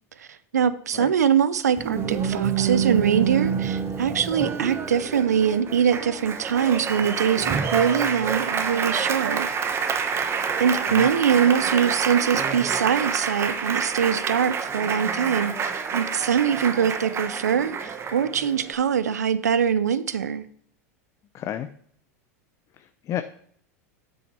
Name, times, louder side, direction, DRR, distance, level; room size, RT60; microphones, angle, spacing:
voice 1, 0.5-9.5 10.1-10.3 10.6-20.4, right 8 dB, 90° right, 16 dB, 0.5 m, -23 dB
Applause, 1.8-18.7, right 6 dB, 30° right, 1.0 m, -27 dB
voice 2, 21.3-21.7 22.8-23.2, left 11 dB, 35° left, 10 dB, 0.5 m, -31 dB
7.9 x 6.3 x 4.3 m, 0.63 s
hypercardioid pair, 95°, 9 cm